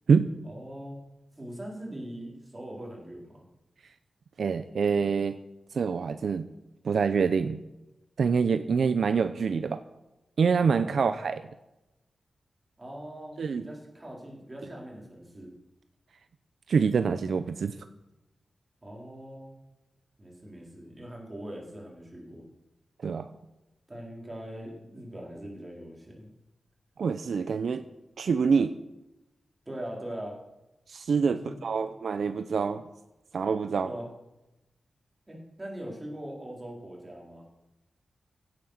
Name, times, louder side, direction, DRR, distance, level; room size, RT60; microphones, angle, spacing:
voice 1, 0.4-1.0 1.4-3.4 10.6-11.2 12.8-15.5 18.8-19.6 20.2-22.4 23.9-26.3 29.7-30.4 31.3-31.9 33.8-34.1 35.3-37.4, right 1 dB, 15° right, -2 dB, 4.4 m, -41 dB
voice 2, 4.4-5.4 5.7-6.5 6.8-7.6 8.2-9.8 10.4-11.4 13.4-13.6 16.7-17.7 23.0-23.3 27.0-27.8 28.2-28.7 30.9-32.8 33.3-33.9, right 5 dB, 65° right, 10 dB, 0.6 m, -26 dB
16.0 x 9.6 x 6.6 m, 0.94 s
wide cardioid pair, 155°, 0 cm